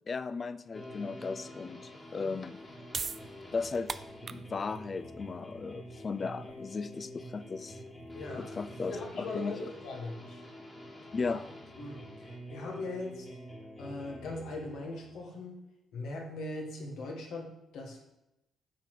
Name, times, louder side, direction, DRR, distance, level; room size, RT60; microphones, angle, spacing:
voice 1, 0.1-2.6 3.5-7.8 8.4-9.6 11.1-11.4, left 4 dB, 40° left, 15 dB, 0.4 m, -36 dB
sound 1, 0.7-15.2, equal, 20° left, 1.9 m, -47 dB
sound 2, 2.5-9.2, right 5 dB, 40° right, 0.3 m, -43 dB
voice 2, 8.1-8.5 8.9-10.4 11.3-11.4 11.8-13.3 13.8-15.6 15.9-18.0, left 2 dB, 80° left, 0 dB, 1.7 m, -40 dB
8.5 x 4.1 x 4.9 m, 0.89 s
cardioid pair, 90°, 0 cm